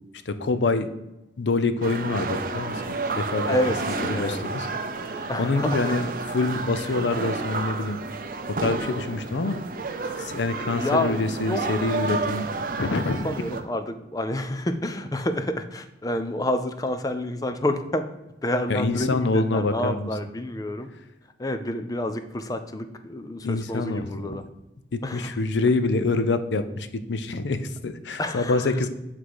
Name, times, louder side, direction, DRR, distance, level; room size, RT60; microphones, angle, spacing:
voice 1, 0.3-0.9 1.4-3.5 4.1-4.7 5.4-8.0 8.5-9.6 10.2-12.5 12.8-13.3 18.7-20.1 23.4-24.4 24.9-28.9, left 3 dB, 80° left, 11 dB, 0.6 m, -26 dB
sound 1, 1.8-13.6, right 3 dB, 50° right, 0.6 m, -31 dB
voice 2, 3.3-4.4 5.3-5.9 10.7-11.6 13.2-18.0 18.4-20.9 21.4-24.4 25.0-25.3 28.2-28.9, left 1 dB, 20° left, 9 dB, 0.4 m, -29 dB
8.1 x 3.7 x 4.8 m, 0.95 s
head